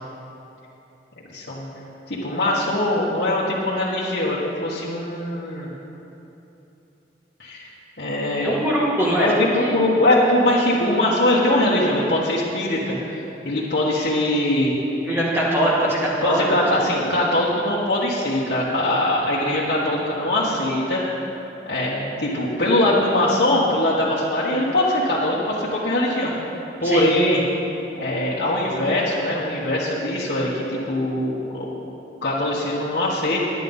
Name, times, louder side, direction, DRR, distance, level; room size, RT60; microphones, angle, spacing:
voice 1, 1.3-1.7 2.1-5.7 7.4-7.7 8.0-8.5 9.2-14.7 16.2-21.2 21.7-26.3 26.8-27.4 28.0-31.7 32.2-33.4, left 1 dB, 65° left, -9 dB, 1.5 m, -22 dB
voice 2, 8.4-9.3 9.6-9.8 15.1-17.1 26.8-27.1, equal, 10° right, -6 dB, 1.9 m, -22 dB
10.0 x 9.9 x 5.5 m, 2.9 s
head